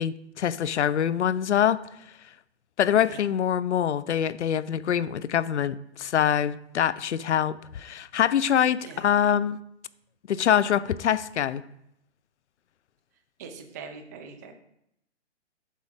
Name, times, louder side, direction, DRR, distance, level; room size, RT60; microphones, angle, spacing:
voice 1, 0.0-1.8 2.8-9.6 10.3-11.6, left 9 dB, 75° left, 17 dB, 0.6 m, -24 dB
voice 2, 8.8-9.2 13.4-14.5, right 5 dB, 15° right, 4 dB, 0.6 m, -43 dB
8.3 x 7.5 x 3.6 m, 0.77 s
hypercardioid pair, 155°, 35 cm